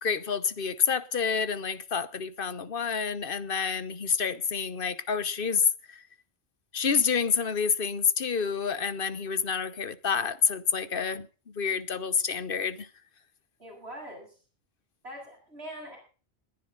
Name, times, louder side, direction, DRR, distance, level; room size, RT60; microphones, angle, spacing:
voice 1, 0.0-6.0 6.7-11.3 11.5-12.9, left 6 dB, 60° left, 1.2 m, -28 dB
voice 2, 13.6-14.4 15.0-16.0, right 1 dB, 80° right, 7.3 m, -43 dB
20.5 x 11.0 x 3.9 m
omnidirectional pair, 1.1 m